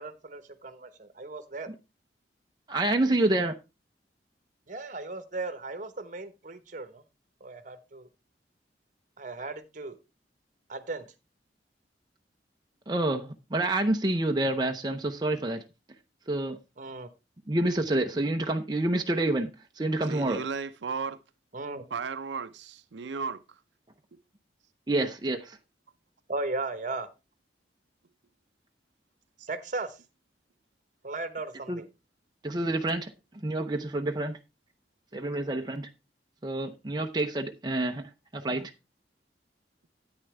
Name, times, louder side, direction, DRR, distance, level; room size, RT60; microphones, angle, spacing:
voice 1, 0.0-1.7 4.7-7.0 7.4-8.1 9.2-10.0 10.7-11.0 16.8-17.1 21.5-21.8 26.3-27.1 29.5-30.0 31.0-31.8, right 3 dB, 45° right, 1.1 m, -36 dB
voice 2, 2.7-3.6 12.9-15.6 16.3-16.6 17.5-19.5 19.8-20.4 24.9-25.6 31.7-31.8 32.4-34.4 35.1-35.9 36.4-38.7, right 2 dB, 25° right, 0.6 m, -28 dB
voice 3, 20.1-21.2 21.9-23.6 29.4-29.5, right 5 dB, 85° right, 0.6 m, -35 dB
9.8 x 8.9 x 3.3 m
head